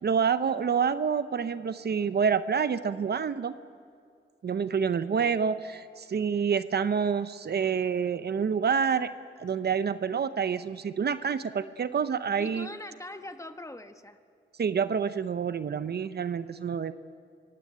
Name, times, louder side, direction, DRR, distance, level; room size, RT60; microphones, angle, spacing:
voice 1, 0.0-3.5 4.4-9.1 9.4-12.7 14.6-16.9, right 6 dB, 60° right, 13 dB, 0.7 m, -27 dB
voice 2, 12.4-14.2, left 1 dB, 15° left, 8 dB, 1.3 m, -42 dB
25.0 x 16.5 x 8.8 m, 2.2 s
cardioid pair, 75°, 19 cm